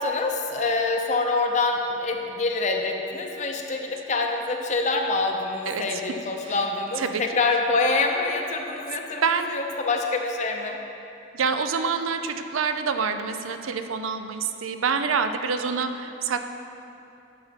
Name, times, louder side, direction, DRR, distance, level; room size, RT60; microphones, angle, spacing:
voice 1, 0.0-9.2 9.5-10.8, left 3 dB, 35° left, 2 dB, 0.6 m, -26 dB
voice 2, 5.7-6.0 6.4-6.6 7.0-7.2 9.2-9.6 11.3-16.5, right 5 dB, 90° right, 8 dB, 0.5 m, -27 dB
11.5 x 6.6 x 4.1 m, 2.9 s
head